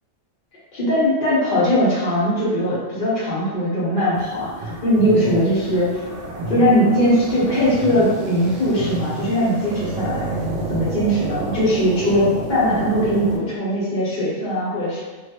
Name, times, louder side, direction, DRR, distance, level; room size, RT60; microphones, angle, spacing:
voice 1, 0.7-5.9 6.5-15.0, equal, 45° left, -8 dB, 1.0 m, -20 dB
sound 1, 4.1-13.4, right 2 dB, 80° right, 0.9 m, -30 dB
3.1 x 2.3 x 2.8 m, 1.3 s
omnidirectional pair, 1.3 m